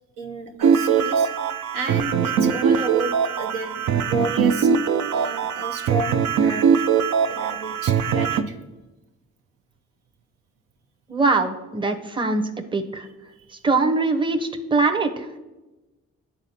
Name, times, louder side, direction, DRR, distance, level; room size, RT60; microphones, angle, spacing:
voice 1, 0.2-1.3 1.7-4.7 5.1-6.8 7.3-8.6, right 2 dB, 75° right, 3 dB, 0.9 m, -31 dB
sound 1, 0.6-8.4, right 7 dB, 60° right, 0.5 m, -21 dB
voice 2, 11.1-12.4 12.7-13.1 13.6-15.4, right 3 dB, 15° right, 6 dB, 0.8 m, -22 dB
9.8 x 4.0 x 2.8 m, 1.1 s
supercardioid pair, 50°, 34 cm